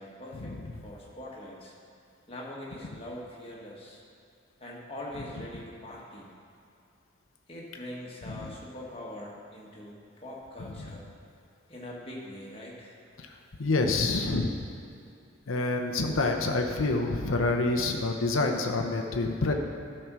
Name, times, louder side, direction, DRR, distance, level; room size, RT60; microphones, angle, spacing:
voice 1, 0.0-1.7 2.3-4.0 4.6-6.3 7.5-11.1 11.7-12.9, left 1 dB, 30° left, -4 dB, 1.5 m, -43 dB
voice 2, 10.6-10.9 13.2-14.5 15.5-19.5, left 3 dB, 90° left, 3 dB, 0.7 m, -28 dB
12.0 x 4.3 x 6.1 m, 2.6 s
head